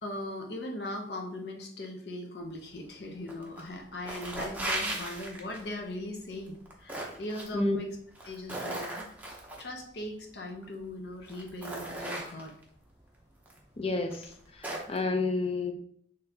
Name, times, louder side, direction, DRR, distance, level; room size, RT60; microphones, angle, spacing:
voice 1, 0.0-8.0 8.2-9.1 9.6-12.6, left 1 dB, 65° left, 2 dB, 0.7 m, -39 dB
sound 1, 3.3-3.7 4.0-5.7 6.5-7.5 8.1-9.6 10.6-10.7 11.2-12.6 13.5-13.6 14.1-15.0, right 1 dB, 10° right, 0.7 m, -37 dB
voice 2, 13.8-14.2 14.6-15.7, left 3 dB, 35° left, 5 dB, 0.5 m, -29 dB
4.1 x 3.2 x 2.7 m, 0.64 s
head